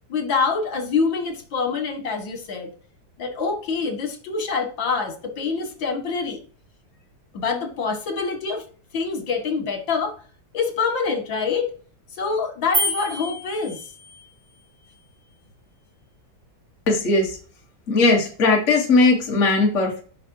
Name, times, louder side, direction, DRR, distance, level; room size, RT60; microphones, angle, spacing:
voice 1, 0.1-2.7 3.2-6.4 7.3-8.7 8.9-10.1 10.5-11.7 12.2-13.8, left 5 dB, 75° left, 4 dB, 2.6 m, -25 dB
sound 1, 12.7-14.3, right 1 dB, 55° right, 2.0 m, -27 dB
voice 2, 16.9-17.4 17.9-20.0, left 3 dB, 40° left, 0 dB, 1.8 m, -18 dB
8.1 x 5.9 x 2.9 m, 0.40 s
omnidirectional pair, 2.1 m